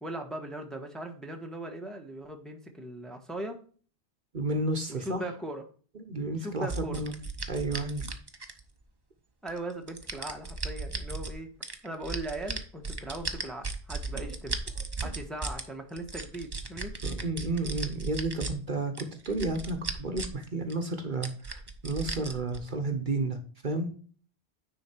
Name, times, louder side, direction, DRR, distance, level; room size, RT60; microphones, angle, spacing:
voice 1, 0.0-3.6 4.9-5.6 6.3-7.1 9.4-11.5 11.8-14.6 15.0-16.9 21.0-21.1, right 1 dB, ahead, 3 dB, 1.1 m, -39 dB
voice 2, 4.3-5.2 5.9-7.1 7.5-8.0 14.1-14.4 17.0-23.4 23.6-23.9, right 2 dB, 50° right, 6 dB, 1.1 m, -32 dB
sound 1, 6.7-8.8 9.5-11.3 11.6-15.6 16.0-18.5 18.9-20.4 20.7-20.8 21.2-22.6, right 3 dB, 25° right, 0.8 m, -36 dB
9.7 x 4.3 x 4.4 m, 0.42 s
omnidirectional pair, 1.1 m